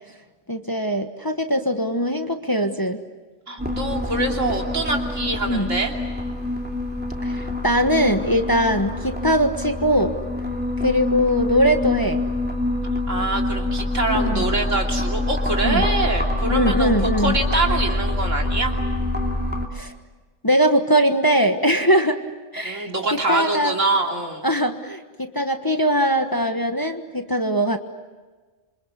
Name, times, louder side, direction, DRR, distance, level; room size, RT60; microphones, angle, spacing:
voice 1, 0.5-3.0 5.4-5.7 7.2-10.2 10.8-12.2 14.0-14.5 15.6-15.9 16.5-17.4 19.7-19.9 20.4-22.2 22.5-22.9 23.3-23.8 24.4-27.8, equal, 15° left, 6 dB, 1.4 m, -21 dB
voice 2, 3.5-5.9 13.1-18.7 22.6-24.5, right 2 dB, 80° right, 2 dB, 3.4 m, -25 dB
sound 1, 3.6-19.7, left 1 dB, 10° right, 2.7 m, -25 dB
27.0 x 25.5 x 8.4 m, 1.3 s
omnidirectional pair, 1.3 m